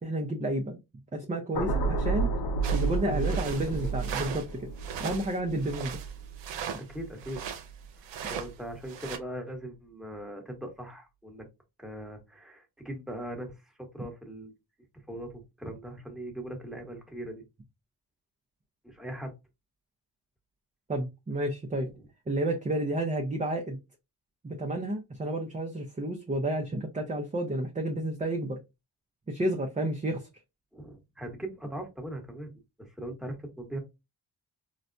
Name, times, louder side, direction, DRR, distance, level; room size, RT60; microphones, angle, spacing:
voice 1, 0.0-0.8 1.1-2.3 2.7-4.7 5.0-6.0 20.9-21.9 22.3-23.8 24.4-28.6 29.3-30.3, right 1 dB, 20° right, 0.6 m, -31 dB
sound 1, 1.5-7.8 8.2-8.5, right 4 dB, 65° left, 0.7 m, -32 dB
sound 2, 2.6-4.5 4.8-7.7 8.0-8.5 8.9-9.2, right 8 dB, 90° right, 0.7 m, -38 dB
voice 2, 6.8-7.4 8.0-11.5 11.8-14.5 14.9-17.4 18.8-19.3 21.8-22.1 30.7-32.5 32.8-33.8, right 1 dB, ahead, 1.1 m, -40 dB
4.0 x 2.2 x 2.6 m
cardioid pair, 85°, 42 cm